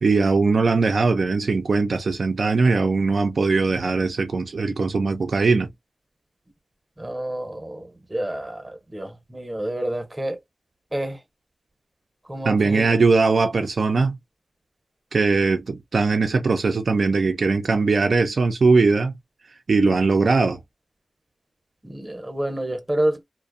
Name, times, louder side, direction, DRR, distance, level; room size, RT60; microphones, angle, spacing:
voice 1, 0.0-5.7 12.5-14.2 15.1-19.1 19.7-20.6, right 4 dB, 70° right, 0.4 m, -20 dB
voice 2, 7.0-10.4 10.9-11.2 12.2-13.0 21.8-23.2, right 1 dB, 20° right, 0.7 m, -29 dB
2.4 x 2.0 x 2.4 m
wide cardioid pair, 70°, 0 cm